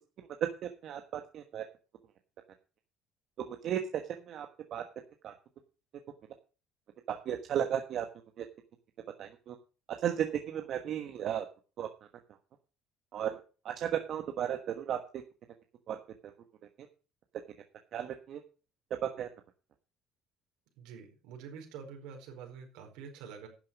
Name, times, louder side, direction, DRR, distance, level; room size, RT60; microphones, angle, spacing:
voice 1, 0.8-1.6 3.5-3.8 4.3-4.5 4.7-4.8 5.2-5.3 7.1-8.0 8.4-8.5 9.2-9.5 10.0-11.4 11.8-11.9 13.1-13.3 13.6-15.0 15.9-16.0 17.9-18.4 19.2-19.3, right 10 dB, 55° right, 5 dB, 1.3 m, -34 dB
voice 2, 20.8-23.5, right 6 dB, 80° right, 3 dB, 4.6 m, -47 dB
11.5 x 7.6 x 6.1 m, 0.36 s
supercardioid pair, 100°, 0 cm